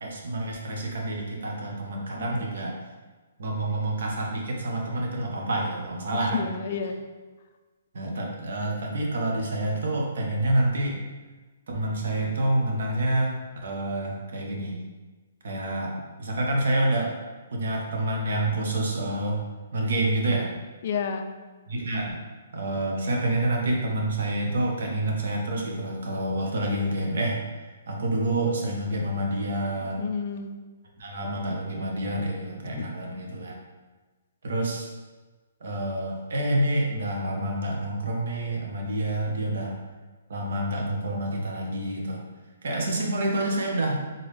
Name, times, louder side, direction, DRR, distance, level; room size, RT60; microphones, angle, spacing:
voice 1, 0.0-2.8 3.4-6.5 7.9-11.0 11.7-14.8 15.4-15.9 16.2-17.1 17.5-19.4 19.7-20.5 21.7-22.2 22.5-27.4 27.9-30.1 31.0-33.5 34.4-34.9 35.6-39.8 40.3-42.2 42.6-44.0, right 1 dB, 60° right, 0 dB, 1.0 m, -28 dB
voice 2, 6.1-7.0 20.8-21.3 30.0-30.6 32.7-32.9, left 6 dB, 35° left, 6 dB, 0.4 m, -30 dB
3.9 x 3.8 x 3.3 m, 1.3 s
hypercardioid pair, 170°, 0 cm